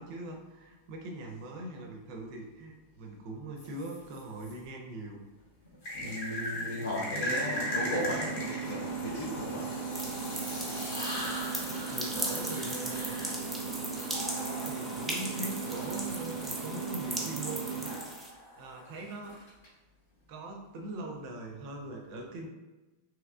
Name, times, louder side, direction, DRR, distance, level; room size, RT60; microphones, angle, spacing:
voice 1, 0.0-5.2 6.5-7.3 11.7-13.1 14.6-18.3 18.6-19.4 20.3-22.5, right 2 dB, 45° right, 2 dB, 0.5 m, -42 dB
sound 1, 3.6-4.5 5.8-16.5 17.9-19.7, equal, 50° left, 1.0 m, -39 dB
voice 2, 5.9-9.7, left 1 dB, 70° left, -6 dB, 0.6 m, -36 dB
sound 2, 7.3-18.0, right 5 dB, 30° left, 0.9 m, -37 dB
sound 3, 9.9-18.3, right 1 dB, 5° right, 0.7 m, -38 dB
3.1 x 2.8 x 2.4 m, 1.1 s
figure-of-eight pair, 90°, 0 cm